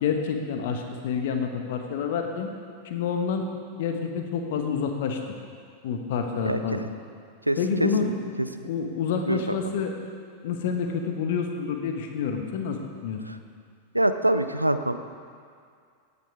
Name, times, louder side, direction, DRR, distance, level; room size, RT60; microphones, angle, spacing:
voice 1, 0.0-2.5 2.8-3.4 3.8-5.2 5.8-6.8 7.6-8.1 8.6-9.9 10.4-13.2, left 6 dB, 55° left, 4 dB, 1.3 m, -28 dB
voice 2, 6.4-6.9 7.5-7.9 9.3-9.6 13.3-13.4 13.9-15.0, right 1 dB, 85° right, 10 dB, 0.5 m, -25 dB
16.5 x 9.7 x 3.6 m, 2.2 s
figure-of-eight pair, 90°, 0 cm